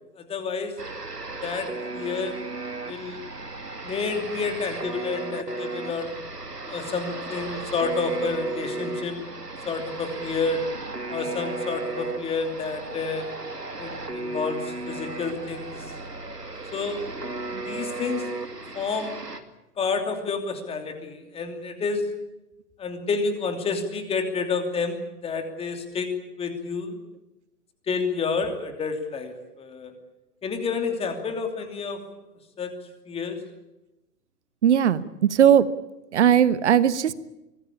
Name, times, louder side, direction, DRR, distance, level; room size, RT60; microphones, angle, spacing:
voice 1, 0.2-0.7 1.4-2.4 2.8-3.2 3.8-6.1 6.6-9.2 9.7-10.6 11.1-13.2 13.8-15.9 16.7-17.0 17.6-18.3 18.7-19.1 19.8-22.1 22.8-26.1 26.4-27.0 27.9-29.9 30.4-32.0 32.6-32.7 33.1-33.4, left 4 dB, 10° left, 6 dB, 2.9 m, -29 dB
sound 1, 0.8-19.4, right 2 dB, 85° right, 2.7 m, -35 dB
voice 2, 34.6-35.7 36.1-37.1, right 9 dB, 45° right, 16 dB, 1.2 m, -18 dB
24.5 x 19.5 x 8.6 m, 0.93 s
figure-of-eight pair, 120°, 47 cm